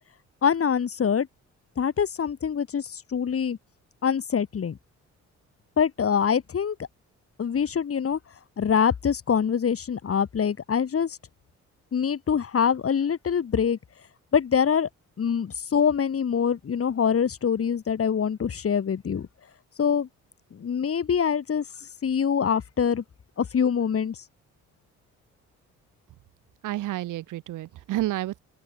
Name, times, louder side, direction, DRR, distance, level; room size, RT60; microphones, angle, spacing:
voice 1, 0.4-1.3 1.8-3.6 4.0-4.8 5.8-6.8 7.4-8.2 8.6-11.2 11.9-13.8 14.3-14.9 15.2-19.3 19.8-20.1 20.5-21.6 22.0-23.0 23.4-24.2, left 7 dB, 50° left, 7.0 m, -24 dB
voice 2, 26.6-28.4, right 15 dB, 85° right, 5.3 m, -30 dB
open air
cardioid pair, 90°, 30 cm